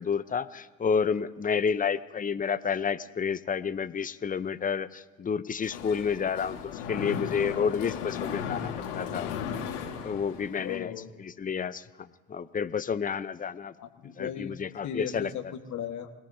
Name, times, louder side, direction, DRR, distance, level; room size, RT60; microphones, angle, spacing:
voice 1, 0.0-9.3 10.0-10.9 11.2-11.8 12.3-13.7 14.2-15.3, left 6 dB, 20° left, 13 dB, 0.8 m, -30 dB
Mechanisms, 5.6-10.8, left 7 dB, 75° left, 2.0 m, -36 dB
voice 2, 10.6-11.1 13.8-16.1, left 8 dB, 50° left, 4 dB, 1.7 m, -37 dB
27.5 x 18.0 x 2.8 m, 1.3 s
hypercardioid pair, 60°, 38 cm